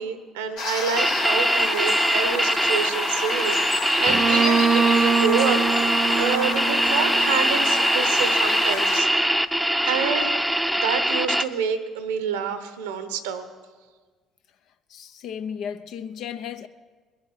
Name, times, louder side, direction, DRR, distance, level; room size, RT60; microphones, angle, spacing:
voice 1, 0.0-5.6 6.2-9.1 9.8-10.3 10.7-13.5, right 6 dB, 85° right, 1.0 m, -28 dB
sound 1, 0.6-9.0, left 4 dB, 90° left, 2.9 m, -29 dB
sound 2, 1.0-11.4, right 1 dB, 5° right, 0.7 m, -23 dB
Bowed string instrument, 4.1-7.8, right 6 dB, 40° right, 0.4 m, -24 dB
voice 2, 14.9-16.7, left 8 dB, 65° left, 0.7 m, -34 dB
21.0 x 7.4 x 7.5 m
hypercardioid pair, 60°, 0 cm